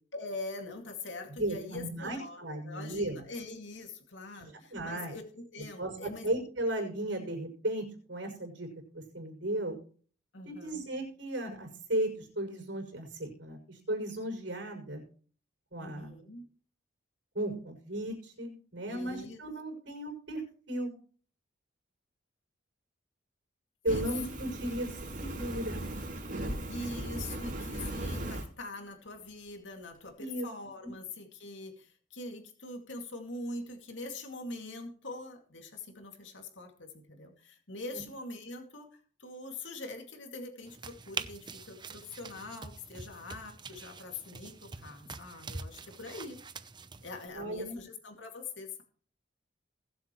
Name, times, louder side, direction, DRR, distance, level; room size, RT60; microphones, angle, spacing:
voice 1, 0.1-6.3 10.3-10.9 15.8-16.5 18.8-19.4 23.9-24.1 26.7-46.4 47.0-48.8, left 2 dB, 75° left, 4 dB, 2.4 m, -43 dB
voice 2, 1.4-3.2 4.4-5.2 5.8-8.7 8.9-9.8 10.4-15.0 15.7-16.1 17.3-20.4 20.7-20.9 23.8-25.8 30.2-30.5 30.8-30.9 47.3-47.8, right 1 dB, 70° right, 3 dB, 6.4 m, -35 dB
Fire, 23.8-28.4, right 1 dB, 45° right, 5.6 m, -37 dB
sound 1, 40.7-47.3, right 4 dB, 25° right, 0.7 m, -44 dB
21.5 x 8.0 x 3.1 m, 0.43 s
head